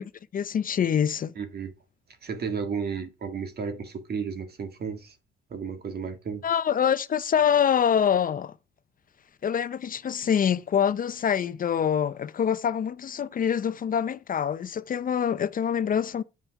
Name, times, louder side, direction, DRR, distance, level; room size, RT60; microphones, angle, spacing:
voice 1, 0.0-1.3 6.4-8.5 9.4-16.2, left 8 dB, 45° left, 0.6 m, -25 dB
voice 2, 1.3-1.7 2.2-5.1 5.5-6.4, right 6 dB, 55° right, 1.8 m, -33 dB
8.6 x 5.4 x 4.7 m
cardioid pair, 90°, 20 cm